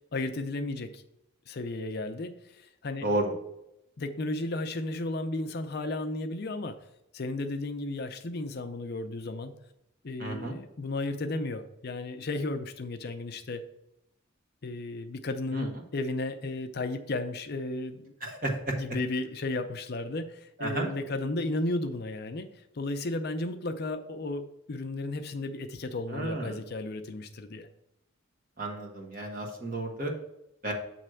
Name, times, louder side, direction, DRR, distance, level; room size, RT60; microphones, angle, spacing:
voice 1, 0.1-1.0 1.5-3.0 4.0-6.8 7.1-9.5 10.0-13.6 14.6-18.1 18.8-22.5 22.7-24.4 24.7-27.7, left 2 dB, 50° left, 7 dB, 0.5 m, -34 dB
voice 2, 3.0-3.3 10.2-10.6 15.5-15.8 18.2-18.8 20.6-20.9 26.1-26.6 28.6-30.1 30.6-30.7, right 1 dB, 40° right, 1 dB, 1.4 m, -32 dB
7.8 x 3.3 x 6.2 m, 0.84 s
head